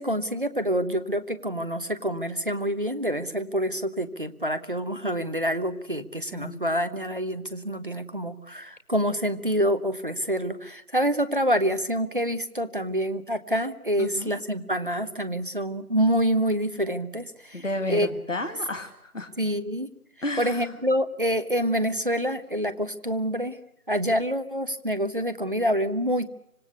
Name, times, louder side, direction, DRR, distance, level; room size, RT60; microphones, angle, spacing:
voice 1, 0.0-18.1 19.4-19.9 20.4-23.6 23.9-26.3, equal, 35° right, 11 dB, 1.1 m, -27 dB
voice 2, 6.3-6.7 14.0-14.3 17.5-19.3 20.2-20.7, left 1 dB, 55° left, 6 dB, 2.1 m, -32 dB
25.5 x 18.0 x 8.3 m, 0.79 s
figure-of-eight pair, 170°, 44 cm